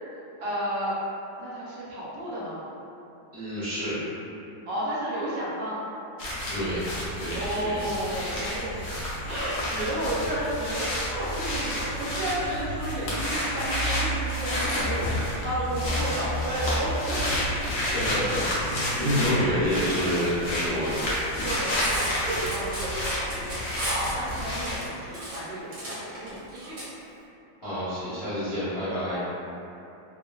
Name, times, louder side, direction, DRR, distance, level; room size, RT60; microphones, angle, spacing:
voice 1, 0.4-0.9 1.4-2.6 4.7-5.8 7.3-8.8 9.2-17.5 19.7-20.5 21.4-26.8, right 1 dB, 75° right, -8 dB, 1.4 m, -32 dB
voice 2, 3.3-4.0 6.5-8.0 17.9-21.0 27.6-29.2, equal, 35° left, -15 dB, 0.4 m, -28 dB
sound 1, 6.2-24.8, left 1 dB, 80° left, 0.7 m, -30 dB
Cutlery silverware, 21.2-26.8, right 1 dB, 60° right, 1.0 m, -35 dB
3.0 x 2.3 x 2.2 m, 2.9 s
omnidirectional pair, 2.1 m